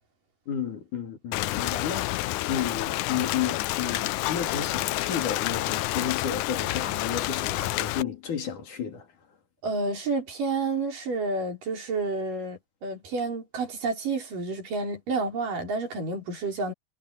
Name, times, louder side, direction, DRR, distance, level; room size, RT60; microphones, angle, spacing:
voice 1, 0.5-9.1, left 8 dB, 65° left, 4.7 m, -32 dB
Rain, 1.3-8.0, left 18 dB, 80° left, 2.0 m, -29 dB
voice 2, 9.6-16.7, right 3 dB, 75° right, 6.3 m, -30 dB
omnidirectional pair, 3.9 m